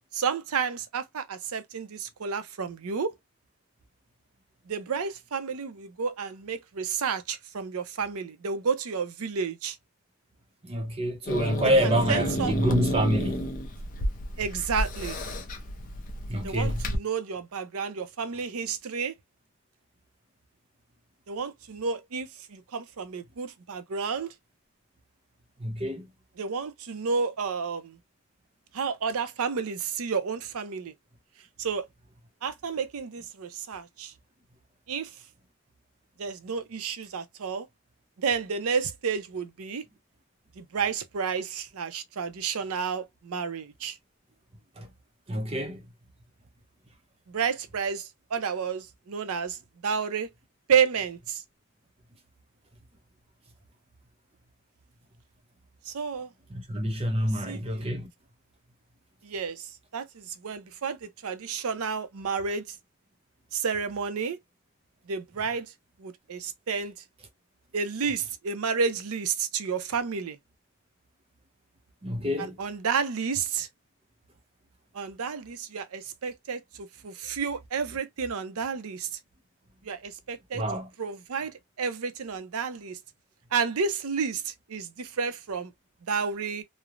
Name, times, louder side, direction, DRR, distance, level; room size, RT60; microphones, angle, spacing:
voice 1, 0.1-3.1 4.7-9.8 11.8-12.5 14.4-15.2 16.4-19.1 21.3-24.3 26.4-28.0 28.7-30.9 31.6-31.9 32.4-34.1 34.9-35.1 36.2-37.7 38.2-39.8 40.6-44.0 47.3-49.6 49.8-50.3 50.7-51.4 55.9-56.3 57.2-57.8 59.2-62.8 63.5-64.4 65.1-65.7 66.0-66.9 67.7-70.4 72.4-73.7 74.9-79.1 79.8-80.6 81.0-83.0 83.5-85.7 86.1-86.6, right 6 dB, 75° right, 0.5 m, -31 dB
voice 2, 10.6-13.5 16.3-16.8 25.6-26.0 44.8-44.9 45.3-45.8 56.5-58.1 72.0-72.6 80.5-80.9, equal, 25° right, 0.6 m, -27 dB
Growling / Hiss, 11.3-17.0, equal, 35° left, 0.5 m, -32 dB
3.1 x 2.0 x 2.4 m
head